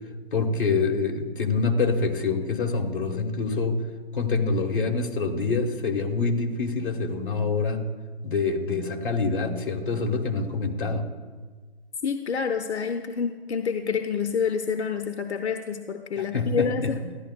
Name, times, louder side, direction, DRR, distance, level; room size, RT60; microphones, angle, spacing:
voice 1, 0.3-3.8 4.1-7.8 8.2-11.1 16.2-16.9, left 4 dB, 50° left, 2 dB, 1.4 m, -26 dB
voice 2, 12.0-17.0, left 6 dB, 80° left, 6 dB, 0.7 m, -28 dB
13.5 x 10.5 x 2.3 m, 1.4 s
figure-of-eight pair, 160°, 33 cm